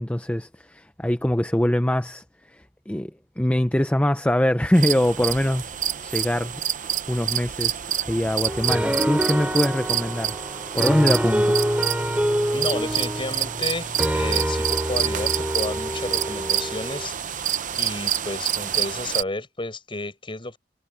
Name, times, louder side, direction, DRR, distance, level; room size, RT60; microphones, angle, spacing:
voice 1, 0.0-5.7 6.0-10.4 10.7-11.6, left 1 dB, 10° left, 0.7 m, -23 dB
sound 1, 4.7-19.2, right 10 dB, 45° right, 0.8 m, -28 dB
sound 2, 8.5-17.1, equal, 10° right, 3.4 m, -26 dB
voice 2, 12.5-20.6, left 2 dB, 30° left, 6.9 m, -32 dB
head